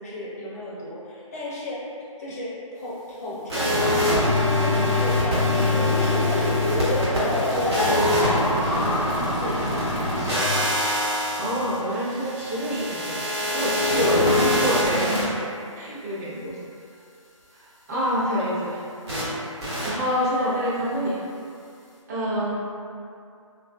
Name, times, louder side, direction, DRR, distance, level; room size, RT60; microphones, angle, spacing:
voice 1, 0.0-1.8 2.2-10.5 15.0-15.4, left 1 dB, 30° left, -7 dB, 0.6 m, -34 dB
sound 1, 3.5-15.2 19.1-19.2 19.6-19.9, left 1 dB, 50° right, 1.1 m, -24 dB
sound 2, 5.2-11.2, left 1 dB, 80° left, 0.7 m, -28 dB
voice 2, 11.3-13.2 13.5-15.2 15.8-16.5 17.5-17.6 17.9-18.8 19.5-21.2 22.1-22.5, equal, 30° right, -9 dB, 0.8 m, -26 dB
3.4 x 2.5 x 2.3 m, 2.5 s
figure-of-eight pair, 155°, 17 cm